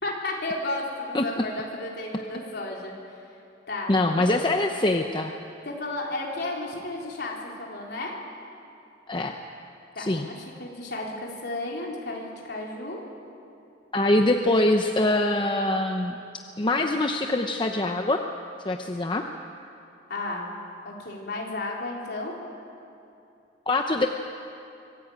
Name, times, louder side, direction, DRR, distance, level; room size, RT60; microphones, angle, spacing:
voice 1, 0.0-2.9 3.7-3.9 4.3-4.4 5.6-8.1 10.0-13.0 20.1-20.5 20.8-22.4, left 2 dB, 55° left, -2 dB, 4.0 m, -33 dB
voice 2, 3.9-5.3 9.1-9.4 10.0-10.3 13.9-16.2 16.6-18.2 18.6-19.2 23.7-24.1, left 2 dB, 25° left, 4 dB, 0.8 m, -23 dB
25.0 x 15.5 x 8.8 m, 2.7 s
head